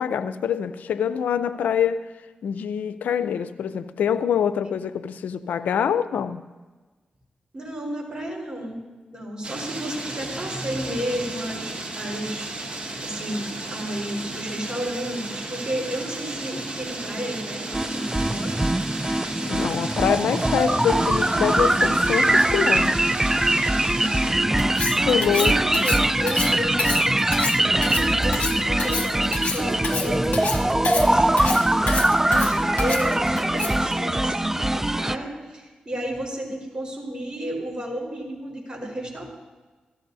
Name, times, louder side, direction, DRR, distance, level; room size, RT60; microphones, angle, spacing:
voice 1, 0.0-2.0 2.4-6.4 19.0-23.0 25.0-25.8, left 8 dB, 90° left, 13 dB, 0.5 m, -25 dB
voice 2, 7.5-8.8 9.1-18.6 23.7-31.8 32.2-39.2, equal, 30° right, -1 dB, 4.3 m, -32 dB
sound 1, 9.4-24.3, right 2 dB, 50° right, 1.8 m, -34 dB
sound 2, 17.7-35.2, right 1 dB, 15° right, 0.4 m, -22 dB
Cutlery silverware, 24.6-33.9, left 4 dB, 60° left, 1.1 m, -30 dB
15.0 x 14.0 x 2.7 m, 1.3 s
cardioid pair, 55°, 3 cm